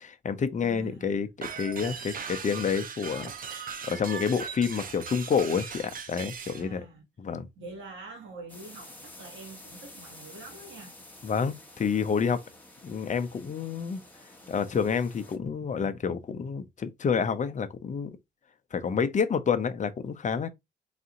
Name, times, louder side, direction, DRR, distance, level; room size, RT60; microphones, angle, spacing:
voice 1, 0.0-6.8 7.2-7.5 11.2-12.4 12.8-14.0 14.5-18.1 18.7-20.5, left 6 dB, 40° left, 0.7 m, -29 dB
voice 2, 0.6-1.3 6.4-7.0 7.6-10.9, right 3 dB, 75° right, 2.0 m, -45 dB
sound 1, 1.4-6.6, right 6 dB, 45° right, 0.8 m, -39 dB
sound 2, 8.5-15.4, left 1 dB, 10° left, 1.3 m, -50 dB
4.1 x 2.7 x 3.7 m
cardioid pair, 90°, 20 cm